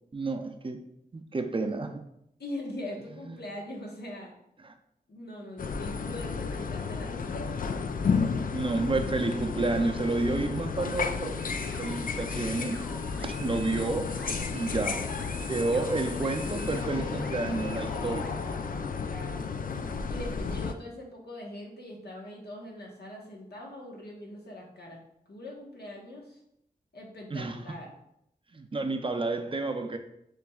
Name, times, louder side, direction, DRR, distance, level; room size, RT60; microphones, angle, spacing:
voice 1, 0.1-0.8 1.1-2.0 3.3-3.4 4.6-4.7 8.5-11.4 11.8-12.9 13.2-14.2 14.5-15.1 15.5-18.3 27.3-27.6 28.5-30.0, right 3 dB, 30° right, 6 dB, 0.5 m, -30 dB
voice 2, 2.4-4.3 5.1-7.8 19.0-25.0 25.3-26.4 26.9-28.0, left 1 dB, 80° left, -1 dB, 1.2 m, -42 dB
sound 1, 5.6-20.7, left 5 dB, 55° left, 0.4 m, -32 dB
sound 2, 11.4-18.3, right 2 dB, 5° left, 0.9 m, -48 dB
6.9 x 3.2 x 2.4 m, 0.77 s
wide cardioid pair, 75°, 17 cm